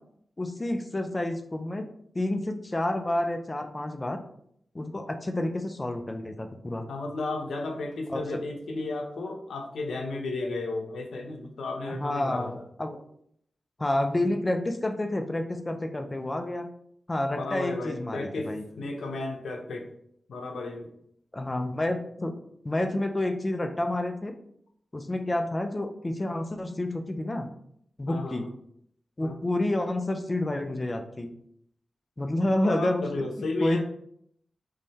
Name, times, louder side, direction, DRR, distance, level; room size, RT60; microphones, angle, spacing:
voice 1, 0.4-1.9 2.1-4.2 4.7-6.9 8.1-8.4 11.9-13.0 13.8-16.7 17.1-18.6 21.3-22.3 22.6-24.3 24.9-27.5 28.0-28.5 29.2-31.3 32.2-33.1 33.4-33.8, left 1 dB, 30° left, 6 dB, 0.6 m, -29 dB
voice 2, 6.9-12.6 17.3-19.9 20.3-20.9 28.1-28.5 29.2-29.3 32.6-33.8, left 2 dB, 85° left, 2 dB, 0.8 m, -33 dB
3.7 x 3.1 x 4.1 m, 0.70 s
cardioid pair, 60°, 0 cm